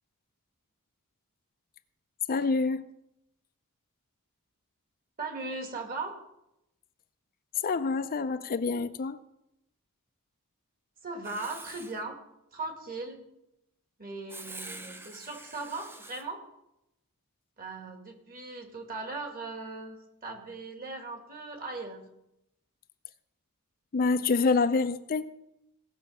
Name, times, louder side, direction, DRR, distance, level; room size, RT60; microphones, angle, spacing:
voice 1, 2.3-2.9 7.6-9.2 23.9-25.3, left 4 dB, 40° left, 10 dB, 0.5 m, -27 dB
voice 2, 5.2-6.2 11.0-12.2 12.5-13.3 14.0-16.4 17.6-20.0 20.2-22.1, right 3 dB, 40° right, 4 dB, 2.1 m, -38 dB
Writing, 11.2-12.0 14.3-16.2, right 2 dB, 10° right, 0.6 m, -45 dB
17.5 x 6.9 x 5.6 m, 0.85 s
head